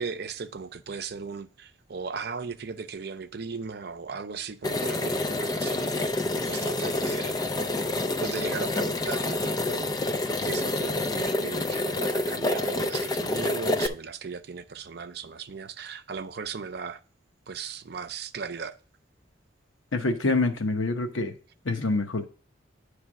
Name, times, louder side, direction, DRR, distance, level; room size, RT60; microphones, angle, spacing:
voice 1, 0.0-7.4 8.2-10.1 10.4-17.0 17.5-18.7, right 5 dB, 55° right, 0.5 m, -37 dB
sound 1, 4.6-13.9, left 2 dB, 20° left, 0.4 m, -28 dB
voice 2, 19.9-21.3 21.6-22.3, left 3 dB, 90° left, 1.0 m, -26 dB
9.9 x 3.3 x 6.0 m
head